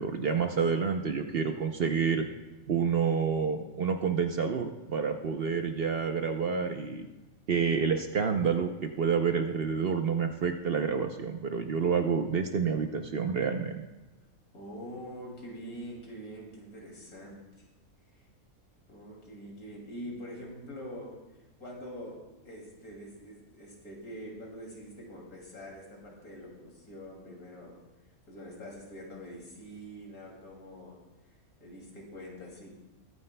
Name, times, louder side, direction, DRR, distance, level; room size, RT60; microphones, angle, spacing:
voice 1, 0.0-2.3 2.7-7.1 7.5-13.8, right 6 dB, 55° right, 5 dB, 0.7 m, -28 dB
voice 2, 5.4-5.8 14.5-17.4 18.9-21.2 21.6-22.2 22.4-27.8 28.3-31.0 31.6-32.7, equal, 85° left, -2 dB, 3.1 m, -44 dB
22.5 x 9.5 x 2.2 m, 1.1 s
omnidirectional pair, 1.5 m